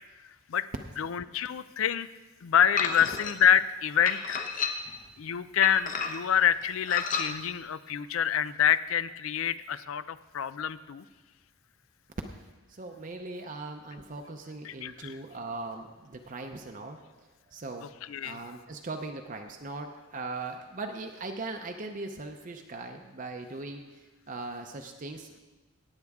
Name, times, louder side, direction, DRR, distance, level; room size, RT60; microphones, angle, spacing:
voice 1, 1.0-2.1 2.4-4.4 5.2-11.0 14.6-15.2 18.0-18.4, left 9 dB, 75° left, 15 dB, 0.4 m, -27 dB
sound 1, 2.8-3.3 4.1-5.0 5.6-6.3 6.9-7.3, left 5 dB, 40° left, 0.9 m, -31 dB
voice 2, 12.7-17.9 18.2-25.4, right 3 dB, 40° right, 4 dB, 0.6 m, -40 dB
18.0 x 8.2 x 3.6 m, 1.2 s
head